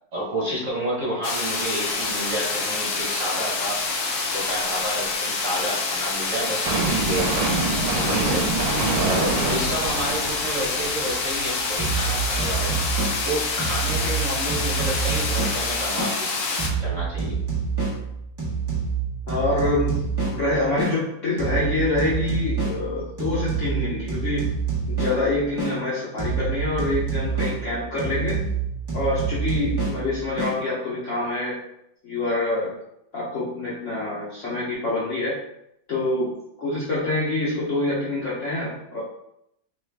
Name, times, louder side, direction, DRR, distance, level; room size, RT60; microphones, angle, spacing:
voice 1, 0.1-3.8 4.3-7.5 7.9-8.4 9.0-16.4 16.8-17.4, right 1 dB, 50° right, -6 dB, 1.3 m, -30 dB
sound 1, 1.2-16.7, left 3 dB, 90° left, 0.6 m, -27 dB
sound 2, 6.6-12.6 13.0-13.1, right 3 dB, 85° right, 1.3 m, -27 dB
sound 3, 11.8-16.2 16.6-21.0 21.4-25.8 26.2-30.6, right 5 dB, 25° right, 0.5 m, -27 dB
voice 2, 19.3-24.5 24.9-28.4 28.9-31.6 32.0-32.7 33.1-35.4 35.9-36.3 36.6-39.0, left 2 dB, 60° left, -8 dB, 0.8 m, -26 dB
3.1 x 2.3 x 3.3 m, 0.78 s
omnidirectional pair, 2.0 m